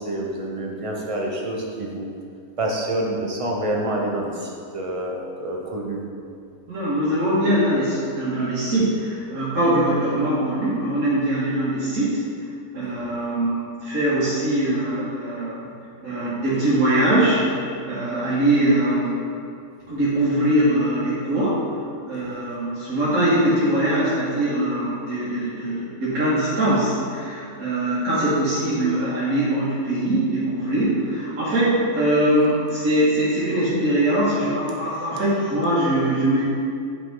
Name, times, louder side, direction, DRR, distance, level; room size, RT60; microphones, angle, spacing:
voice 1, 0.0-2.1 2.6-6.0, right 1 dB, 25° right, -1 dB, 0.9 m, -27 dB
voice 2, 6.7-12.2 12.7-15.7 16.0-17.4 17.8-19.2 19.9-21.6 22.1-36.4, right 1 dB, 65° right, -12 dB, 2.6 m, -22 dB
10.0 x 5.5 x 4.0 m, 2.4 s
omnidirectional pair, 1.6 m